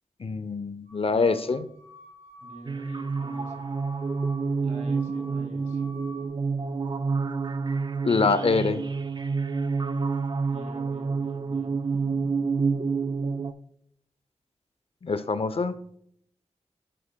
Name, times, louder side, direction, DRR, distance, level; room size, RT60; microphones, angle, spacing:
voice 1, 0.2-1.6 8.0-8.8 15.0-15.8, left 4 dB, 55° left, 13 dB, 0.5 m, -25 dB
sound 1, 0.9-6.3, left 1 dB, 60° right, 2.1 m, -49 dB
voice 2, 1.0-1.4 2.4-3.7 4.6-5.8 10.4-12.3, right 1 dB, 85° right, 1 dB, 2.1 m, -46 dB
sound 2, 2.7-13.5, right 4 dB, 40° right, 0.4 m, -28 dB
10.0 x 6.1 x 2.2 m, 0.68 s
cardioid pair, 50°, 12 cm